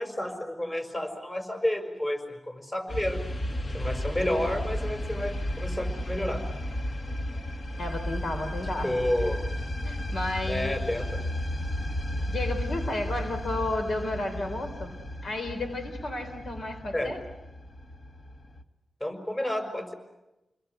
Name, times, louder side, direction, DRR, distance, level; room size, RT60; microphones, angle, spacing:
voice 1, 0.0-3.2 3.7-6.4 8.8-9.4 10.5-11.2 16.9-17.1 19.0-19.9, left 1 dB, 25° left, 6 dB, 5.7 m, -30 dB
sound 1, 2.9-18.6, left 1 dB, 45° left, 1.8 m, -33 dB
voice 2, 7.8-9.0 9.8-11.1 12.3-15.0 15.2-17.2, left 2 dB, 70° left, 6 dB, 3.8 m, -33 dB
29.5 x 22.0 x 8.1 m, 0.99 s
wide cardioid pair, 85°, 0 cm